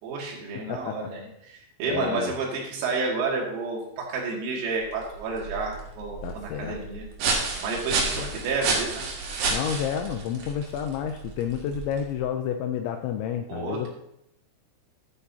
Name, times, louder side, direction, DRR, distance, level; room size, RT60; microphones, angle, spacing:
voice 1, 0.0-7.0 7.6-9.1 13.5-13.9, right 4 dB, 90° right, -3 dB, 5.1 m, -30 dB
voice 2, 0.7-1.1 1.9-2.3 6.2-6.8 7.9-8.4 9.5-13.9, left 9 dB, 85° left, 5 dB, 2.6 m, -30 dB
sound 1, 4.8-12.2, right 4 dB, 60° right, 3.3 m, -31 dB
12.0 x 10.0 x 2.8 m, 0.78 s
omnidirectional pair, 5.9 m